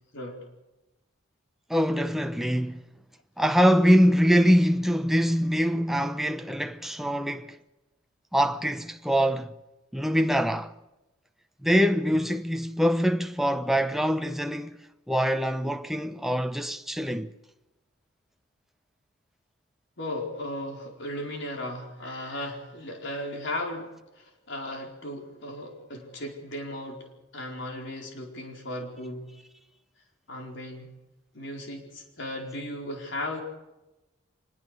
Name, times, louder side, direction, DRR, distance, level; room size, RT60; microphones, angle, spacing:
voice 1, 0.1-0.4 20.0-29.3 30.3-30.9 31.3-33.4, left 1 dB, 60° left, 4.6 m, -36 dB
voice 2, 1.7-2.8 3.4-7.6 8.3-9.5 9.9-10.7 11.6-14.8 15.1-17.3, equal, ahead, 0.8 m, -24 dB
24.5 x 20.5 x 6.6 m
head